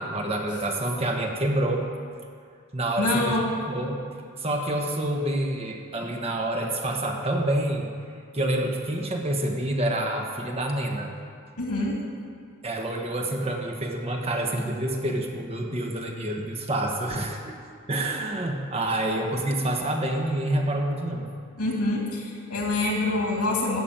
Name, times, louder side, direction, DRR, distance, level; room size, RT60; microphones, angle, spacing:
voice 1, 0.0-1.8 2.7-3.4 3.7-4.0 4.4-7.9 8.3-11.1 12.6-17.6 17.9-21.2, right 1 dB, 25° right, 2 dB, 1.2 m, -27 dB
voice 2, 3.0-3.5 11.6-12.0 21.6-23.8, left 2 dB, 85° left, -1 dB, 2.5 m, -26 dB
14.5 x 6.0 x 8.8 m, 2.2 s
head